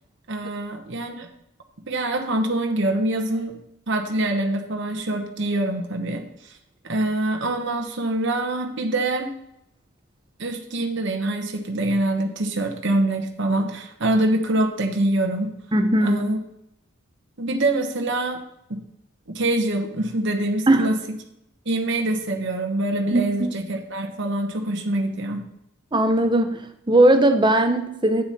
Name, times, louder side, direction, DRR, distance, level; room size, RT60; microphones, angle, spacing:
voice 1, 0.3-1.3 1.9-3.5 3.9-6.5 6.8-9.3 10.4-15.5 16.0-16.4 17.4-18.4 18.7-18.8 19.3-21.0 21.6-25.4, right 1 dB, 55° right, 4 dB, 1.1 m, -25 dB
voice 2, 15.7-16.2 20.7-20.9 23.1-23.5 25.9-28.2, right 1 dB, 20° right, 7 dB, 0.8 m, -19 dB
9.5 x 7.8 x 4.3 m, 0.80 s
head